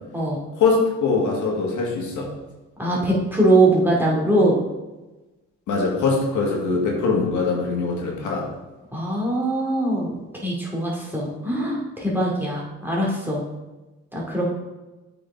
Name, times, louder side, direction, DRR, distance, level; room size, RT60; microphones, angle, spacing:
voice 1, 0.6-2.3 5.7-8.5, left 4 dB, 80° left, -1 dB, 1.8 m, -22 dB
voice 2, 2.8-4.6 8.9-10.2 10.4-13.4 14.1-14.5, right 1 dB, 5° right, -4 dB, 2.5 m, -21 dB
8.4 x 5.0 x 3.6 m, 1.1 s
cardioid pair, 90°, 30 cm